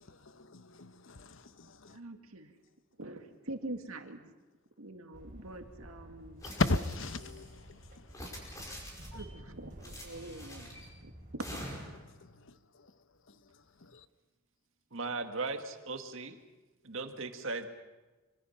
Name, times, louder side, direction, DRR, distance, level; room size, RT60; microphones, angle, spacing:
voice 1, 0.4-2.0 6.6-7.5 8.2-8.4, left 2 dB, 65° left, 1.0 m, -34 dB
voice 2, 1.9-2.6 3.0-4.3 4.8-6.5 9.1-11.6, right 2 dB, 85° right, 2.2 m, -44 dB
sound 1, 5.1-11.4, equal, 40° right, 4.2 m, -51 dB
sound 2, 6.4-7.5 8.1-9.3 9.8-10.9 11.4-12.1, equal, 15° left, 5.2 m, -45 dB
voice 3, 14.9-16.4 16.8-17.7, right 3 dB, 65° right, 1.9 m, -37 dB
25.5 x 24.5 x 5.9 m
head